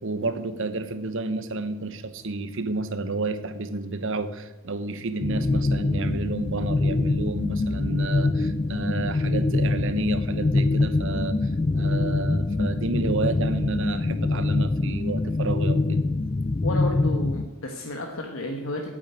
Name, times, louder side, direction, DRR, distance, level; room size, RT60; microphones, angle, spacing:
voice 1, 0.0-16.0, right 3 dB, 65° right, 11 dB, 1.0 m, -30 dB
sound 1, 5.2-17.5, left 2 dB, 25° left, 0.4 m, -24 dB
voice 2, 16.6-18.9, left 1 dB, 70° left, 3 dB, 1.3 m, -32 dB
8.9 x 8.8 x 9.4 m, 1.1 s
head